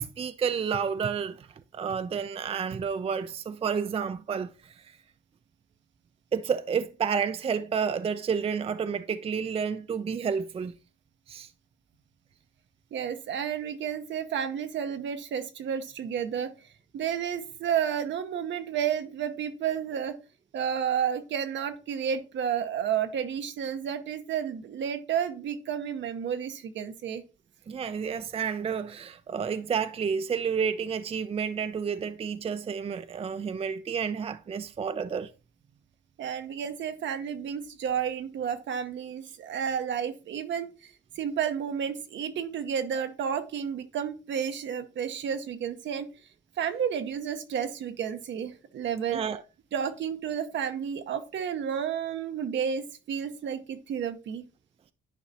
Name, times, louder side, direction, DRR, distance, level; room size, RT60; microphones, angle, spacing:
voice 1, 0.0-1.5 1.7-5.0 6.3-10.7 11.3-11.5 27.7-35.3 49.1-49.4, right 6 dB, 30° right, 0.4 m, -30 dB
voice 2, 12.9-16.7 16.9-20.2 20.5-27.2 36.2-46.1 46.6-49.2 49.7-54.4, right 8 dB, 70° right, 0.9 m, -31 dB
10.0 x 4.9 x 2.8 m
cardioid pair, 90°, 20 cm